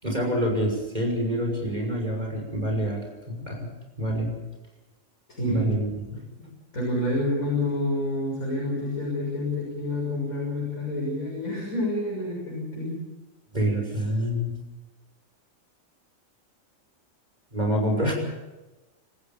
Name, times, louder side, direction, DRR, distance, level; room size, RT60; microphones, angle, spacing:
voice 1, 0.0-3.7 4.0-4.4 5.4-6.2 13.5-14.5 17.5-18.1, equal, 30° right, 2 dB, 6.3 m, -27 dB
voice 2, 5.3-5.7 6.4-6.5 6.7-13.0, left 1 dB, 90° left, -3 dB, 7.0 m, -28 dB
28.0 x 14.5 x 7.3 m, 1.1 s
omnidirectional pair, 1.4 m